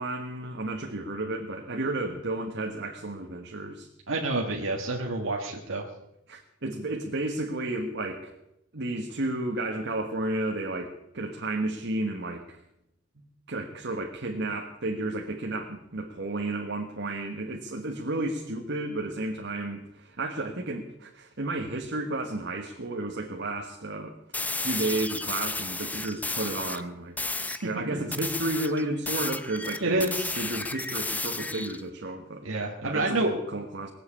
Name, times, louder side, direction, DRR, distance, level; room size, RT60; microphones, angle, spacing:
voice 1, 0.0-3.9 6.3-8.4 8.7-12.6 13.2-24.1 24.6-27.2 27.6-30.1 30.4-32.5 32.8-33.9, right 2 dB, 60° right, 2 dB, 1.5 m, -32 dB
voice 2, 4.1-5.9 27.5-28.0 29.8-30.3 32.4-33.3, right 2 dB, 80° right, -1 dB, 1.7 m, -28 dB
sound 1, 24.3-26.8 27.2-27.6 28.1-31.8, left 2 dB, 10° left, 0.6 m, -33 dB
20.5 x 7.8 x 8.5 m, 0.86 s
head